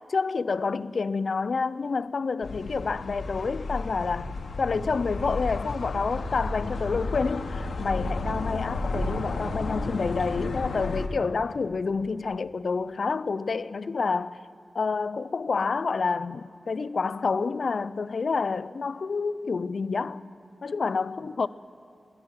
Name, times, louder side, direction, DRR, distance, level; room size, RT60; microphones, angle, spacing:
voice 1, 0.1-14.4 14.7-20.2 20.6-21.5, left 4 dB, 55° left, 0.3 m, -28 dB
sound 1, 2.4-11.1, left 2 dB, 75° left, 1.1 m, -32 dB
20.5 x 11.0 x 6.3 m
wide cardioid pair, 140°, 0 cm